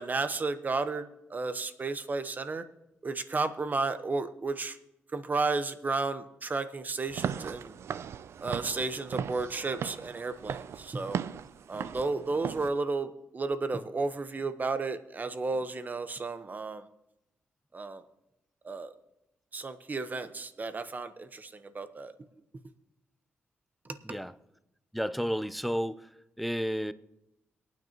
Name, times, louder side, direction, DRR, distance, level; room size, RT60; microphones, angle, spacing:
voice 1, 0.0-2.6 3.0-4.8 5.1-7.8 8.4-11.2 11.7-16.8 17.7-18.0 18.6-18.9 19.5-22.1 24.1-24.2, right 3 dB, 40° right, 1.1 m, -33 dB
Walk footsteps / Siren, 7.1-12.7, right 8 dB, 70° right, 0.5 m, -37 dB
voice 2, 24.9-26.1 26.4-26.9, equal, ahead, 0.6 m, -31 dB
22.5 x 9.3 x 3.0 m
cardioid pair, 65°, 5 cm